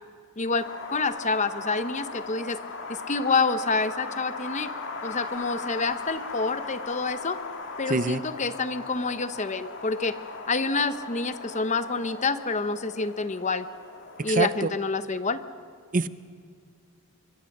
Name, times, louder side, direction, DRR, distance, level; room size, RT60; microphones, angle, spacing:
Wind, 0.6-14.6, left 3 dB, 55° left, 2.2 m, -38 dB
voice 1, 0.9-2.6 2.9-4.7 5.0-7.4 7.8-10.1 10.5-13.7 14.2-15.4, left 4 dB, 30° left, 11 dB, 0.9 m, -27 dB
voice 2, 7.9-8.2 14.3-14.7 15.9-16.1, right 3 dB, 35° right, 14 dB, 0.6 m, -25 dB
25.5 x 22.0 x 6.7 m, 2.3 s
head